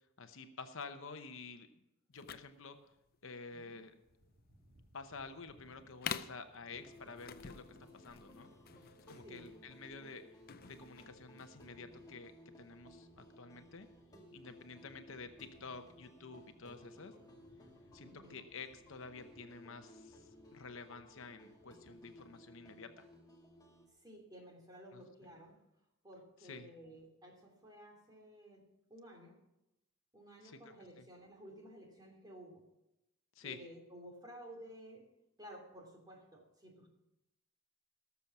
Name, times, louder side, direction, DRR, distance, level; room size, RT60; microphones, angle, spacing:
voice 1, 0.2-1.7 2.1-2.8 3.2-3.9 4.9-7.6 7.9-8.5 8.8-10.2 10.6-12.3 12.6-13.9 14.3-17.1 17.9-23.1 24.9-25.1 26.4-26.7 30.4-30.6 31.0-31.1 33.3-33.6, left 4 dB, 65° left, 8 dB, 0.9 m, -50 dB
sound 1, 2.1-11.6, left 8 dB, 45° left, 0.5 m, -48 dB
voice 2, 3.5-3.8 9.2-9.5 18.0-18.4 24.0-25.6 26.0-28.6 28.9-29.4 30.1-32.6 33.4-35.1 35.4-36.9, equal, 20° right, 1 dB, 3.0 m, -54 dB
sound 2, 4.0-22.7, equal, 55° right, 2.3 m, -69 dB
sound 3, 6.7-23.9, equal, 15° left, 1.7 m, -59 dB
18.5 x 7.0 x 6.0 m, 0.91 s
head